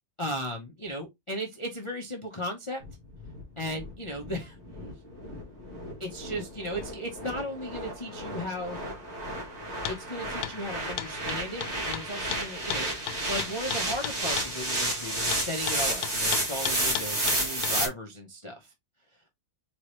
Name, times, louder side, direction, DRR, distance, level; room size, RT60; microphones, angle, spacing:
voice 1, 0.2-2.8 3.6-4.6 6.0-8.8 9.9-12.9 13.3-18.7, equal, 30° left, 0.5 m, -36 dB
sound 1, 2.8-17.9, right 1 dB, 40° right, 1.8 m, -32 dB
sound 2, 9.8-10.0 10.4-10.6 11.0-14.5 15.3-17.8, left 11 dB, 70° left, 1.1 m, -34 dB
4.7 x 3.2 x 3.0 m
omnidirectional pair, 1.9 m